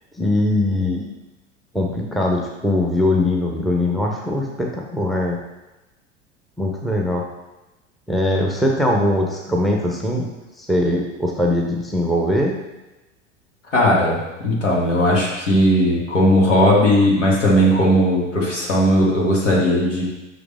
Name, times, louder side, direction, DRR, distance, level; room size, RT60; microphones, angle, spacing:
voice 1, 0.2-1.1 1.7-5.4 6.6-7.2 8.1-10.3 10.6-12.6, left 1 dB, ahead, -1 dB, 0.8 m, -21 dB
voice 2, 13.7-14.2 14.4-20.0, equal, 75° left, -3 dB, 2.0 m, -17 dB
6.2 x 5.0 x 3.5 m, 1.0 s
figure-of-eight pair, 80°, 37 cm